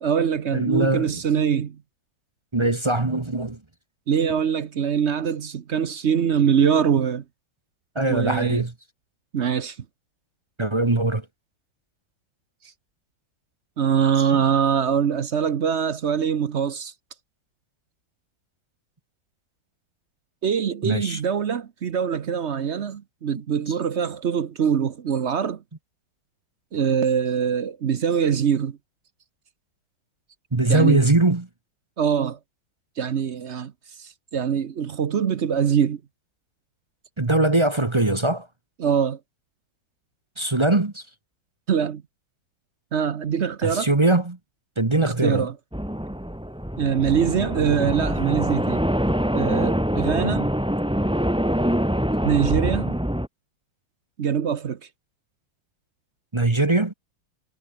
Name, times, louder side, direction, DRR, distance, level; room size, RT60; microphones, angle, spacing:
voice 1, 0.0-1.8 4.1-7.2 8.1-8.6 9.3-9.8 13.8-16.9 20.4-25.6 26.7-28.8 30.7-31.0 32.0-32.4 33.0-33.7 34.0-36.0 38.8-39.2 41.7-42.0 42.9-43.9 45.0-45.5 46.8-48.8 49.3-50.6 52.2-53.0 54.2-54.8, right 7 dB, 50° right, 0.8 m, -23 dB
voice 2, 0.5-1.2 2.5-3.6 7.9-8.7 10.6-11.2 14.2-14.4 20.8-21.2 30.5-31.5 37.2-38.5 40.4-41.0 43.6-44.4 44.8-45.5 56.3-56.9, right 2 dB, 20° right, 0.8 m, -21 dB
sound 1, 45.7-53.3, equal, 5° right, 2.2 m, -24 dB
omnidirectional pair, 2.1 m